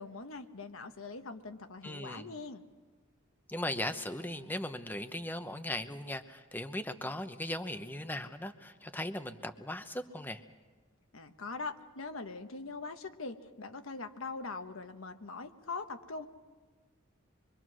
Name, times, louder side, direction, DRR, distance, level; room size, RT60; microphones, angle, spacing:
voice 1, 0.0-2.6 11.1-16.3, left 3 dB, 80° left, 7 dB, 1.2 m, -42 dB
voice 2, 1.8-2.3 3.5-10.4, left 1 dB, 10° left, 9 dB, 0.9 m, -38 dB
25.0 x 23.5 x 6.2 m, 1.4 s
head